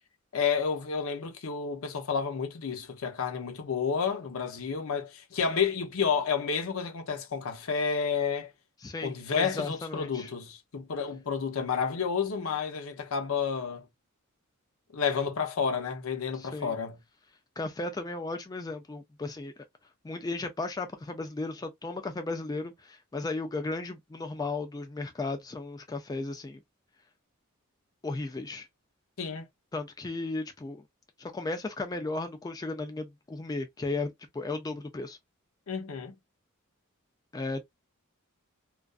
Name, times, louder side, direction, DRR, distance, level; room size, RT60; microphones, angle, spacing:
voice 1, 0.3-8.5 9.0-13.9 14.9-17.0 29.2-29.5 35.7-36.2, left 6 dB, 70° left, 0.6 m, -30 dB
voice 2, 8.8-10.3 16.3-16.7 17.6-19.5 20.0-26.6 28.0-28.7 29.7-30.8 31.2-35.2 37.3-37.6, left 3 dB, 15° left, 0.3 m, -35 dB
2.4 x 2.3 x 2.3 m
head